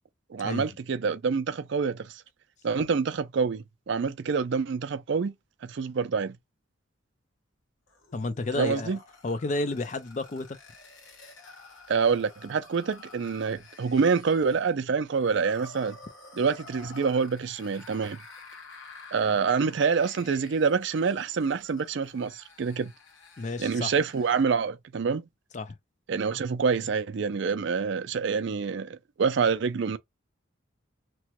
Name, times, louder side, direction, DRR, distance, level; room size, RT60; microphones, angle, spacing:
voice 1, 0.3-2.2 2.6-5.3 5.6-6.4 8.5-9.0 11.9-16.0 16.3-18.2 19.1-22.9 23.6-25.3 26.1-30.0, right 5 dB, 60° right, 0.4 m, -27 dB
sound 1, 7.9-24.5, left 3 dB, 70° left, 1.2 m, -50 dB
voice 2, 8.1-9.0 9.2-10.5 23.4-23.9 25.5-25.7, left 2 dB, 35° left, 0.4 m, -31 dB
3.0 x 2.1 x 2.9 m
head